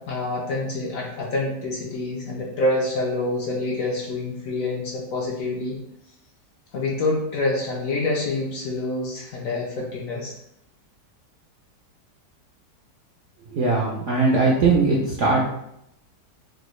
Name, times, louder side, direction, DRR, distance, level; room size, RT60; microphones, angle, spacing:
voice 1, 0.0-5.8 6.7-10.3, left 2 dB, 65° left, -3 dB, 0.9 m, -26 dB
voice 2, 13.5-15.4, right 3 dB, 70° right, -3 dB, 0.7 m, -20 dB
3.8 x 2.2 x 3.0 m, 0.78 s
omnidirectional pair, 1.8 m